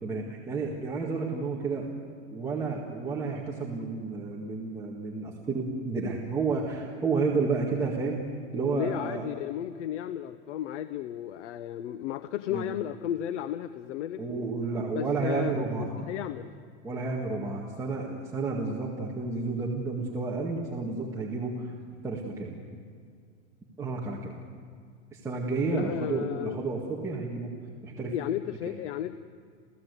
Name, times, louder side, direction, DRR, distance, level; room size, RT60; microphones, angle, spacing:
voice 1, 0.0-1.9 2.3-8.2 8.5-9.3 12.5-12.7 14.2-15.9 16.8-21.7 22.0-22.6 23.8-24.3 25.1-27.5 27.8-28.1 28.7-28.8, right 4 dB, 10° right, -4 dB, 1.9 m, -31 dB
voice 2, 8.7-14.2 14.9-15.5 16.0-16.5 25.7-26.6 28.0-29.2, left 11 dB, 80° left, 12 dB, 0.9 m, -34 dB
29.5 x 16.0 x 8.2 m, 2.2 s
supercardioid pair, 170°, 36 cm